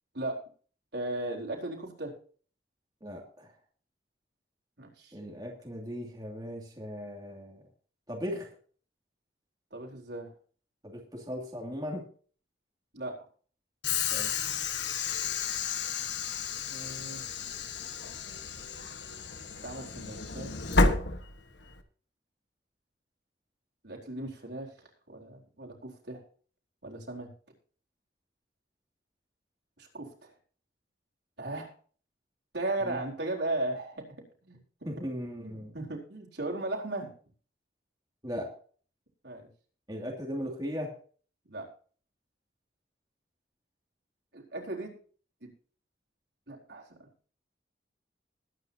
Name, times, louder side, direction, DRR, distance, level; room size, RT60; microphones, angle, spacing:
voice 1, 0.9-2.1 4.8-5.1 9.7-10.3 12.9-13.2 16.7-17.2 19.6-20.5 23.8-24.7 25.1-26.2 26.8-27.3 29.8-30.3 31.4-31.7 32.5-34.1 34.5-34.9 35.4-37.1 39.2-39.5 41.5-41.7 44.3-45.0 45.4-45.5 46.5-47.1, right 2 dB, 65° right, 0 dB, 4.2 m, -36 dB
voice 2, 3.0-3.5 5.1-7.6 8.1-8.5 10.8-12.1 14.1-14.4 32.8-33.0 34.9-35.7 38.2-38.5 39.9-41.0, equal, 20° right, -1 dB, 2.5 m, -38 dB
Train / Sliding door, 13.8-21.8, left 4 dB, 75° left, 1.5 m, -31 dB
21.0 x 9.7 x 2.9 m, 0.43 s
head